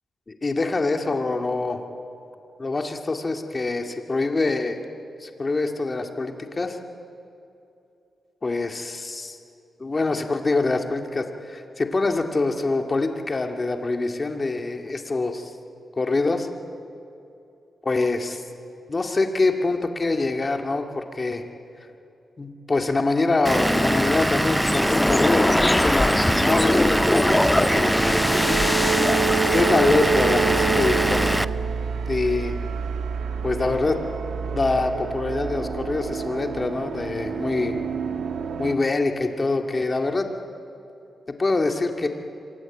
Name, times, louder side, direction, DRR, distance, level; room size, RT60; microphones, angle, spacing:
voice 1, 0.3-1.8 2.6-4.8 5.2-6.8 8.4-9.4 9.8-15.5 16.0-16.5 17.9-18.4 18.9-21.4 22.4-28.2 29.5-31.5 32.1-32.5 33.4-34.0 34.5-37.8 38.6-40.3 41.4-42.1, left 3 dB, 30° left, 4 dB, 2.3 m, -25 dB
Vehicle / Engine, 23.4-31.4, equal, 5° right, 0.6 m, -22 dB
sound 1, 24.6-29.6, left 1 dB, 15° left, 1.3 m, -23 dB
sound 2, 26.3-38.8, right 7 dB, 80° right, 1.5 m, -29 dB
27.0 x 24.0 x 9.1 m, 2.7 s
wide cardioid pair, 120°, 0 cm